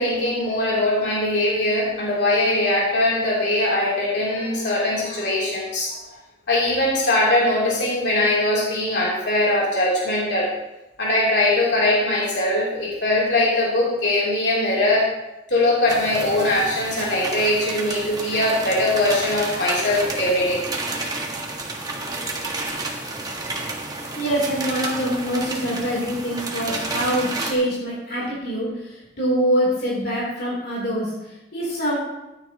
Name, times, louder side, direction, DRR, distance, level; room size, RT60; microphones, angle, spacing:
voice 1, 0.0-6.0 6.5-10.5 11.0-15.1 15.5-20.6, left 1 dB, 85° left, -5 dB, 3.2 m, -21 dB
sound 1, 15.9-27.5, right 2 dB, 20° right, 1.4 m, -30 dB
voice 2, 24.1-32.0, equal, 60° left, -6 dB, 3.2 m, -24 dB
14.0 x 9.6 x 2.9 m, 0.98 s
head